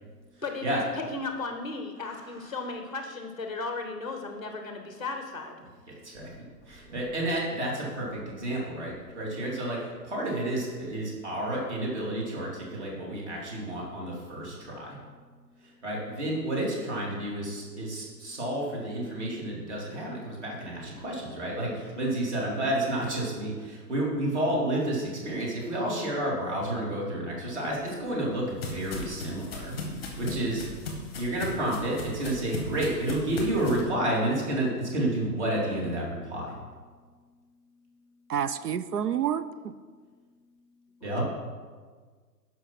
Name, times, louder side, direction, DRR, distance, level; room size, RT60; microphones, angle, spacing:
voice 1, 0.4-5.5 41.0-41.2, left 3 dB, 25° left, 4 dB, 0.6 m, -35 dB
voice 2, 2.0-2.4 5.9-6.3 6.6-15.0 15.6-29.8 30.2-30.6 31.2-36.5 41.0-41.2, right 1 dB, 45° right, -3 dB, 3.3 m, -30 dB
sound 1, 27.7-33.8, left 2 dB, 5° left, 1.0 m, -37 dB
voice 3, 38.3-39.7, right 9 dB, 70° right, 13 dB, 0.6 m, -29 dB
12.0 x 5.6 x 5.9 m, 1.5 s
hypercardioid pair, 175°, 48 cm